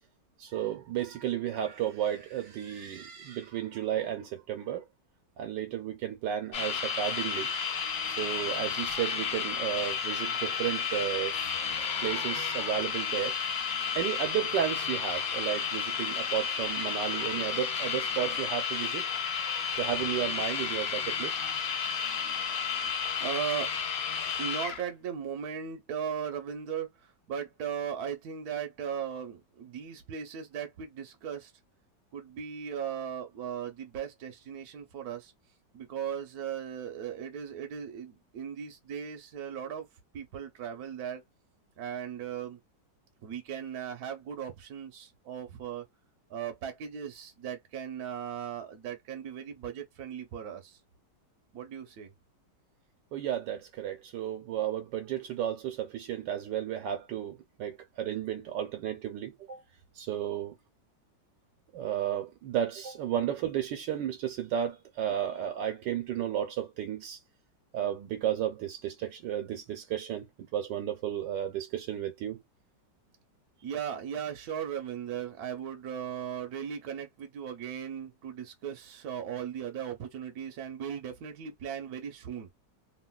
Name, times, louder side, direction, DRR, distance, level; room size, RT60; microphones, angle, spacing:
voice 1, 0.4-4.8 5.4-13.4 13.9-21.4 53.1-59.6 60.0-60.5 61.7-67.2 67.7-70.3 70.5-72.4, right 10 dB, 85° right, 1.3 m, -33 dB
sound 1, 6.5-24.8, left 6 dB, 80° left, 0.5 m, -32 dB
voice 2, 23.2-23.8 24.4-31.5 32.1-35.3 35.7-39.9 40.1-41.2 41.8-42.6 43.2-45.9 46.3-50.8 51.5-52.1 73.6-82.5, right 8 dB, 65° right, 1.2 m, -37 dB
2.8 x 2.8 x 2.2 m
omnidirectional pair, 1.9 m